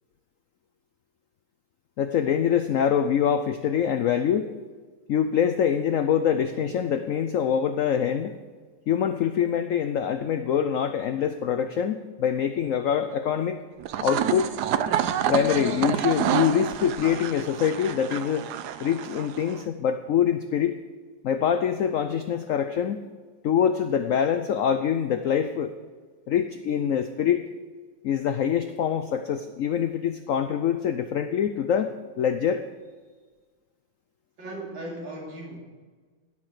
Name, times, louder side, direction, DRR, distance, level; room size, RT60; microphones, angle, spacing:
voice 1, 2.0-4.5 5.1-8.3 8.9-13.6 14.0-14.5 15.3-18.4 18.8-20.8 21.2-23.0 23.4-25.7 26.3-27.4 28.0-32.6, left 8 dB, 85° left, 9 dB, 0.7 m, -24 dB
sound 1, 13.8-19.6, right 10 dB, 70° right, 1.1 m, -28 dB
voice 2, 34.4-35.6, right 1 dB, 85° right, -2 dB, 3.4 m, -37 dB
16.5 x 6.1 x 6.4 m, 1.4 s
omnidirectional pair, 2.0 m